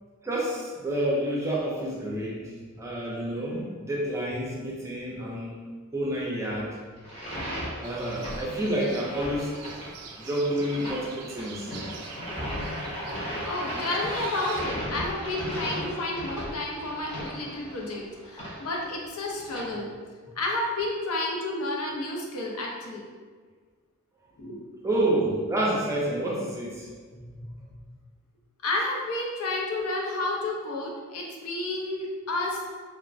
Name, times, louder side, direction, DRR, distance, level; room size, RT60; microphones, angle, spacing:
voice 1, 0.2-5.6 5.9-6.8 7.8-9.5 10.2-11.7 24.8-26.9 27.2-27.5, right 1 dB, 15° right, -4 dB, 0.4 m, -29 dB
sound 1, 7.0-19.6, equal, 30° left, 0.8 m, -36 dB
sound 2, 7.8-14.7, right 5 dB, 90° right, 0.3 m, -45 dB
voice 2, 13.4-19.9 20.4-23.0 24.4-24.6 28.6-32.7, left 2 dB, 75° left, -1 dB, 0.5 m, -31 dB
3.1 x 2.0 x 2.5 m, 1.6 s
head